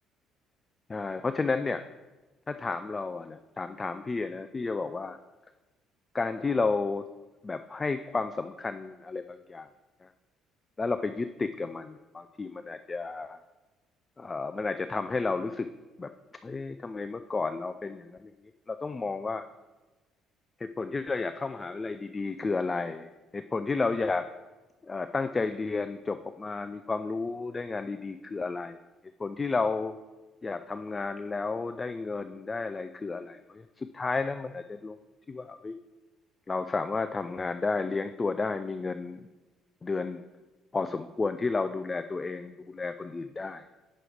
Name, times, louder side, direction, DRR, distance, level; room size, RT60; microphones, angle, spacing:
voice 1, 0.9-1.8 2.5-5.2 6.1-7.0 7.4-9.7 10.0-10.1 10.8-13.4 14.2-15.7 16.0-16.1 16.4-18.3 18.7-19.4 20.6-24.3 24.8-28.8 29.2-30.0 30.4-35.0 35.3-35.8 36.5-39.3 39.8-40.2 40.7-43.6, left 4 dB, 30° left, 10 dB, 0.3 m, -32 dB
7.6 x 6.1 x 3.4 m, 1.2 s
hypercardioid pair, 50°, 0 cm